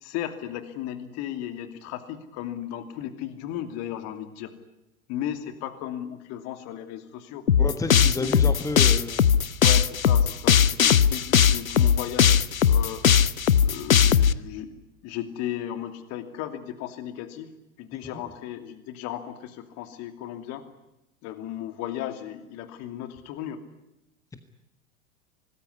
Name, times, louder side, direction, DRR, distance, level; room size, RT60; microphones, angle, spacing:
voice 1, 0.0-4.5 5.1-7.5 8.2-8.5 9.6-13.0 13.6-14.7 15.0-17.5 17.8-20.6 21.2-23.6, left 11 dB, 40° left, 10 dB, 2.7 m, -35 dB
sound 1, 7.5-14.3, left 8 dB, 75° left, 0.9 m, -19 dB
voice 2, 7.6-9.3 18.0-18.2, left 2 dB, 10° left, 9 dB, 1.5 m, -30 dB
25.5 x 19.5 x 9.8 m, 0.90 s
figure-of-eight pair, 90°, 41 cm